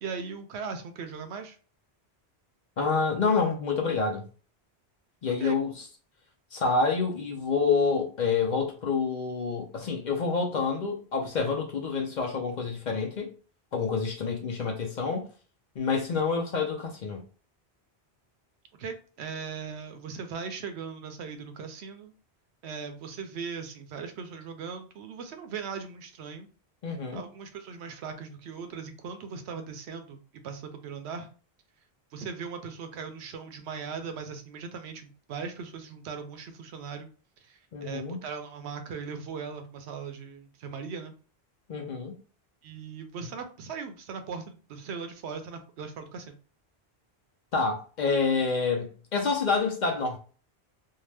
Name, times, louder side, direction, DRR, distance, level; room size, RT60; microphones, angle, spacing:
voice 1, 0.0-1.6 5.4-5.6 18.8-22.1 22.6-26.5 26.9-31.3 32.1-37.1 37.4-41.1 42.6-46.3, right 5 dB, 80° right, 0.8 m, -39 dB
voice 2, 2.8-4.2 5.2-5.9 6.5-13.3 13.7-15.3 15.8-17.2 26.8-27.2 37.7-38.2 41.7-42.1 47.5-50.2, left 4 dB, 55° left, 0.6 m, -28 dB
2.7 x 2.1 x 3.2 m
omnidirectional pair, 1.1 m